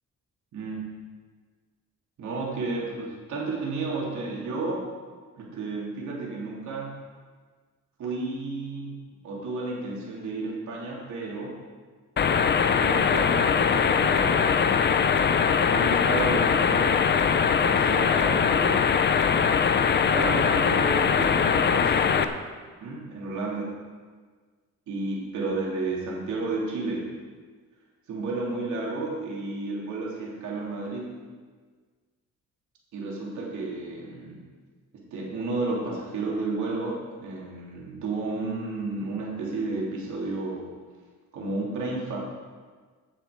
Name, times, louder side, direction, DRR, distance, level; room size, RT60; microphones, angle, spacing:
voice 1, 0.5-0.9 2.2-4.9 5.4-7.0 8.0-11.6 12.7-14.8 15.6-17.1 17.6-18.9 19.3-19.4 20.1-22.4 22.8-23.7 24.9-27.1 28.1-31.3 32.9-34.4 35.1-40.7 41.3-42.2, right 3 dB, 65° right, -3 dB, 3.2 m, -32 dB
sound 1, 12.2-22.2, left 6 dB, 35° left, 0.6 m, -22 dB
17.0 x 6.0 x 5.1 m, 1.5 s
cardioid pair, 130°, 31 cm